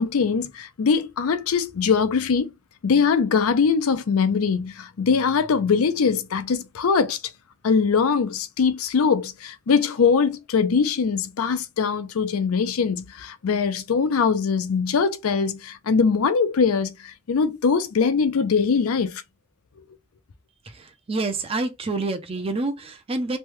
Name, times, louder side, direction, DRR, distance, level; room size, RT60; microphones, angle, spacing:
voice 1, 0.0-2.5 2.8-7.2 7.6-19.2, left 5 dB, 75° left, 0.5 m, -22 dB
voice 2, 20.7-23.4, right 3 dB, 25° right, 0.5 m, -27 dB
3.1 x 2.2 x 3.1 m
head